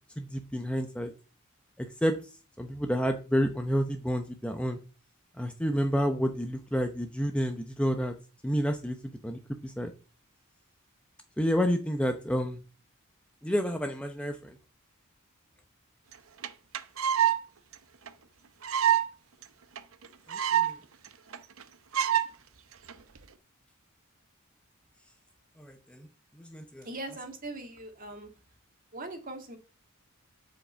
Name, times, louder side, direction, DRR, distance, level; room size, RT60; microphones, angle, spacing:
voice 1, 0.2-1.1 1.8-2.2 2.6-4.8 5.4-8.1 8.4-9.9 11.4-12.6 13.4-14.5 20.3-20.8 25.6-26.1 26.4-26.9, equal, 5° left, 5 dB, 0.7 m, -30 dB
sound 1, 16.1-16.2 16.4-16.5 16.7-17.4 17.7-17.8 18.1-18.2 18.6-19.1 19.4-19.5 19.8-19.9 20.0-20.7 21.0-21.1 21.3-21.6 21.9-22.3 22.9-23.2, right 11 dB, 70° right, 0.8 m, -25 dB
voice 2, 26.8-28.3 28.9-29.6, right 2 dB, 40° right, 5 dB, 1.9 m, -40 dB
8.3 x 5.1 x 7.3 m, 0.34 s
head